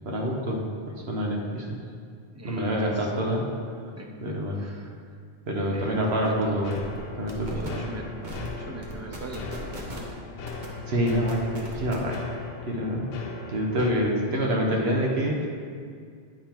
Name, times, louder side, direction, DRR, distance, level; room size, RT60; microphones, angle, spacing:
voice 1, 0.0-1.8 2.4-3.5 4.2-4.6 5.4-6.7 7.1-7.6 10.9-12.3 12.7-13.1 13.5-15.5, equal, 70° right, -1 dB, 1.2 m, -26 dB
voice 2, 2.3-3.1 4.0-5.0 5.7-6.8 7.5-8.1 8.6-10.1, right 1 dB, 25° right, 1 dB, 0.3 m, -41 dB
sound 1, 5.6-5.8 6.1-6.3 6.7-7.0 7.3-7.7 8.2-8.5 8.8-10.1 10.5-10.7 11.1-12.1, right 1 dB, 45° right, 1.1 m, -38 dB
sound 2, 5.8-13.9, left 4 dB, 70° left, 0.8 m, -39 dB
9.6 x 3.7 x 4.4 m, 2.1 s
omnidirectional pair, 1.1 m